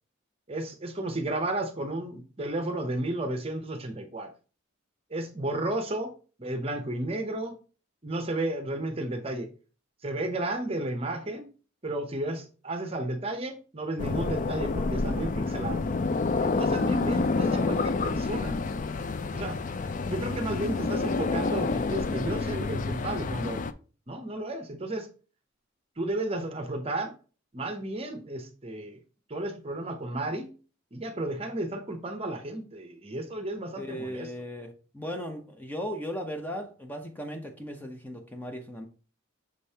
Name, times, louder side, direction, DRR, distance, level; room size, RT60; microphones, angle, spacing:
voice 1, 0.5-4.3 5.1-6.1 6.4-7.6 8.0-9.5 10.0-11.5 11.8-15.8 16.4-18.6 19.3-19.6 19.8-23.6 24.1-25.1 26.0-27.1 27.5-29.0 29.3-30.5 30.9-34.3, right 1 dB, 30° right, 0.8 m, -33 dB
sound 1, 14.0-23.7, left 3 dB, 40° left, 0.4 m, -28 dB
voice 2, 33.7-38.9, equal, 10° left, 0.7 m, -37 dB
6.4 x 5.2 x 2.8 m
head